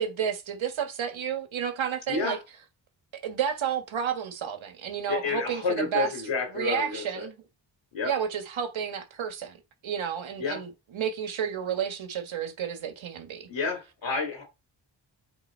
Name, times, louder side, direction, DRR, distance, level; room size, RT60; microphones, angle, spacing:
voice 1, 0.0-2.4 3.1-6.1 6.5-7.4 8.0-9.6 9.8-13.5, right 8 dB, 85° right, 1.5 m, -31 dB
voice 2, 2.1-2.4 5.1-7.0 7.9-8.1 10.4-10.6 13.5-14.4, left 4 dB, 70° left, 2.7 m, -30 dB
7.9 x 4.1 x 4.4 m
cardioid pair, 70°, 46 cm